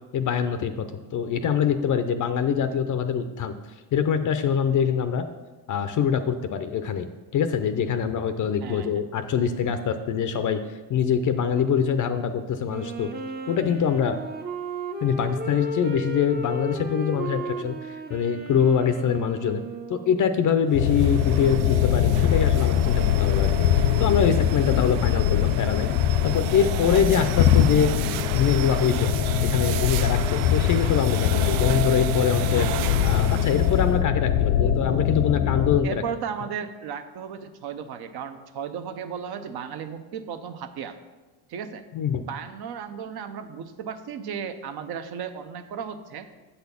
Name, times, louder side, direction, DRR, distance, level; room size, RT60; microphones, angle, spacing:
voice 1, 0.1-3.5 3.9-5.3 5.7-7.1 7.3-13.1 13.5-14.2 15.0-19.6 19.9-23.7 24.0-25.9 26.2-27.9 28.3-29.1 29.4-32.7 33.0-36.0 41.9-42.2, left 7 dB, 40° left, 9 dB, 0.6 m, -24 dB
voice 2, 8.6-9.0 35.8-41.0 41.5-41.8 42.2-46.3, right 7 dB, 55° right, 9 dB, 0.9 m, -35 dB
Wind instrument woodwind instrument, 12.7-20.3, right 2 dB, 20° right, 0.7 m, -34 dB
sound 1, 20.7-35.8, left 10 dB, 80° left, 0.6 m, -22 dB
sound 2, 20.7-34.0, right 13 dB, 80° right, 0.5 m, -34 dB
7.9 x 4.2 x 6.9 m, 1.2 s
supercardioid pair, 105°, 47 cm